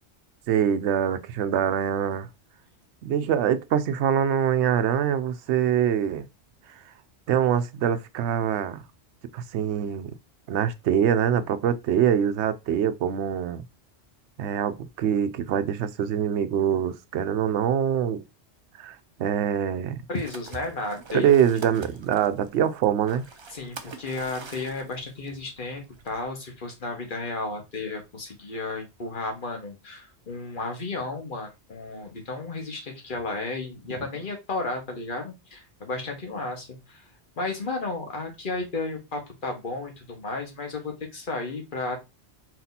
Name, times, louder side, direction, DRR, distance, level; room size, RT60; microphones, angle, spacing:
voice 1, 0.5-2.3 3.0-6.3 7.3-8.8 9.3-10.1 10.5-13.6 14.4-18.2 18.8-20.0 21.1-23.2, right 9 dB, 80° right, 0.9 m, -24 dB
voice 2, 20.1-21.3 23.5-37.0 37.4-42.0, left 3 dB, 50° left, 1.4 m, -33 dB
sound 1, 20.1-26.2, right 4 dB, 40° right, 0.4 m, -44 dB
4.5 x 2.8 x 4.0 m
omnidirectional pair, 1.1 m